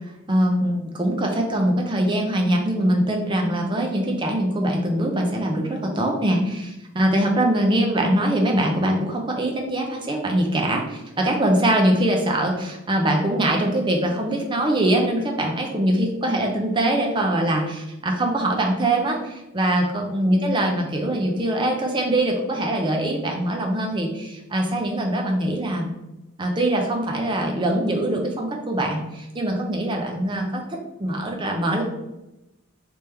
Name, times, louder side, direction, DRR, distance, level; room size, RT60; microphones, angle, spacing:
voice 1, 0.3-25.9 26.4-31.8, right 1 dB, 20° right, 1 dB, 0.5 m, -23 dB
3.4 x 2.8 x 3.3 m, 0.93 s
head